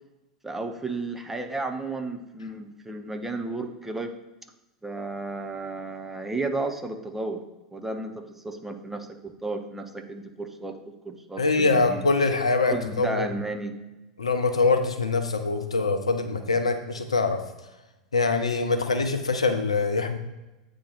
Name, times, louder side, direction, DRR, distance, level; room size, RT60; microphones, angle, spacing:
voice 1, 0.4-4.1 4.8-7.4 7.7-10.8 11.0-12.1 12.7-13.8, right 2 dB, 10° right, 5 dB, 0.6 m, -33 dB
voice 2, 11.4-13.3 14.2-17.4 18.1-20.2, left 3 dB, 80° left, 7 dB, 0.6 m, -24 dB
8.5 x 2.9 x 4.0 m, 1.0 s
figure-of-eight pair, 85°, 3 cm